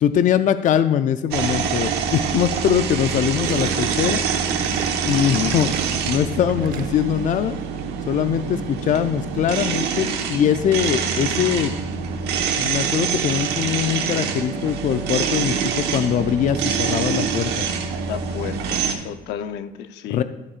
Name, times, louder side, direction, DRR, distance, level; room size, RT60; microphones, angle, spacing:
voice 1, 0.0-4.2 5.0-5.7 6.1-7.6 8.1-11.7 12.6-17.7 20.1-20.2, left 9 dB, 50° left, 11 dB, 0.5 m, -22 dB
sound 1, 1.3-18.9, right 6 dB, 80° right, 1.2 m, -25 dB
Gurgling, 3.4-7.2 7.5-7.9, right 7 dB, 60° right, 0.9 m, -35 dB
voice 2, 5.1-5.5 18.1-20.2, left 9 dB, 85° left, 10 dB, 0.7 m, -31 dB
14.0 x 8.5 x 2.5 m, 1.1 s
cardioid pair, 110°, 17 cm